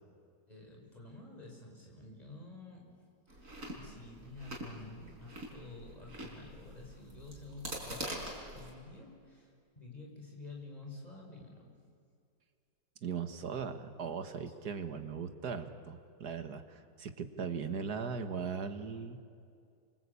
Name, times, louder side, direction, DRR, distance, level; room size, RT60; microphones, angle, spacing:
voice 1, 0.5-2.9 3.4-11.8 14.5-14.7, left 2 dB, 20° left, -1 dB, 6.0 m, -50 dB
Chewing mastication, 3.3-8.7, right 1 dB, 50° right, 5.3 m, -44 dB
voice 2, 13.0-19.2, right 6 dB, 65° right, 8 dB, 2.0 m, -39 dB
28.0 x 25.0 x 8.5 m, 2.3 s
omnidirectional pair, 1.8 m